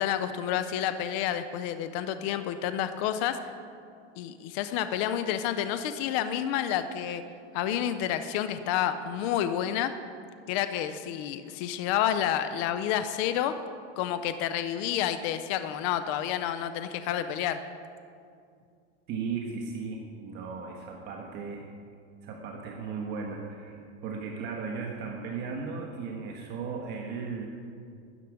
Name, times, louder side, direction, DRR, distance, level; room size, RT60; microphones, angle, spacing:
voice 1, 0.0-3.4 4.2-7.2 7.5-9.9 10.5-13.6 14.0-17.6, left 10 dB, 30° left, 10 dB, 0.4 m, -29 dB
voice 2, 19.1-21.7 22.2-27.5, right 5 dB, 30° right, 0 dB, 1.4 m, -36 dB
13.0 x 9.9 x 9.8 m, 2.3 s
supercardioid pair, 175°, 35 cm